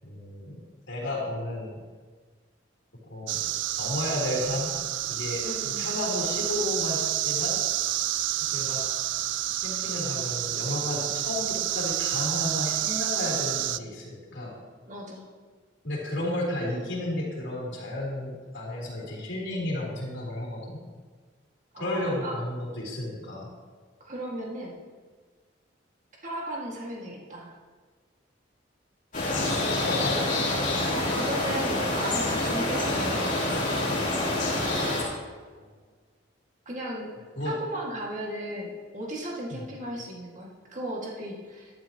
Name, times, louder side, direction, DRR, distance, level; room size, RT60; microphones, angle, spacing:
voice 1, 0.0-0.6 0.9-1.7 3.1-3.4 3.8-4.7 5.1-7.6 8.4-8.8 9.6-14.5 15.8-20.8 21.8-23.5 29.8-30.2 35.6-35.7 37.3-37.5 39.5-39.7, left 1 dB, 70° left, -5 dB, 3.5 m, -32 dB
sound 1, 3.3-13.8, right 14 dB, 75° right, 0.4 m, -29 dB
voice 2, 5.4-6.0 14.8-15.3 21.7-22.3 24.0-24.8 26.2-27.5 30.9-33.7 36.7-37.1 37.4-41.8, right 1 dB, 40° right, -3 dB, 2.1 m, -36 dB
sound 2, 29.1-35.0, left 2 dB, 40° left, 3.3 m, -27 dB
12.5 x 11.5 x 3.0 m, 1.5 s
head